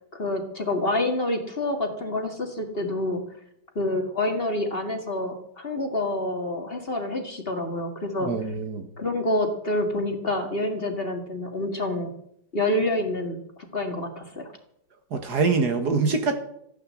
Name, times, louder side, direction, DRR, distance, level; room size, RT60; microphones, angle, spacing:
voice 1, 0.1-3.2 3.8-8.3 9.0-12.1 12.5-13.4 13.7-14.5, left 1 dB, 30° left, 4 dB, 2.1 m, -27 dB
voice 2, 8.2-8.9 15.1-16.4, right 4 dB, 65° right, 7 dB, 2.1 m, -24 dB
15.5 x 9.2 x 7.6 m, 0.76 s
omnidirectional pair, 1.9 m